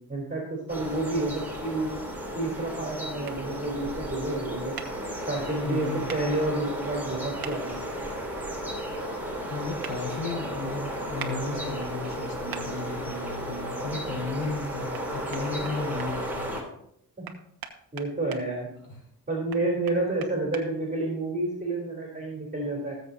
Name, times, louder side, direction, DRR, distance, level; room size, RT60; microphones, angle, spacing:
voice 1, 0.1-1.9 2.3-4.8 5.3-7.8 17.2-17.3 17.9-18.7 19.3-22.9, right 2 dB, 20° right, -2 dB, 3.6 m, -29 dB
sound 1, 0.7-16.6, right 1 dB, 5° right, 3.7 m, -34 dB
sound 2, 3.2-3.4 4.8-4.9 6.1-6.2 7.4-7.6 9.8-10.0 11.2-11.3 12.5-12.7 14.9-15.0 15.3-16.1 17.2-18.4 19.5-20.6, right 8 dB, 65° right, 1.4 m, -39 dB
voice 2, 5.6-6.1 9.5-16.5 18.9-19.0, left 3 dB, 60° left, -1 dB, 4.8 m, -34 dB
19.0 x 7.7 x 2.9 m, 0.73 s
cardioid pair, 105°, 38 cm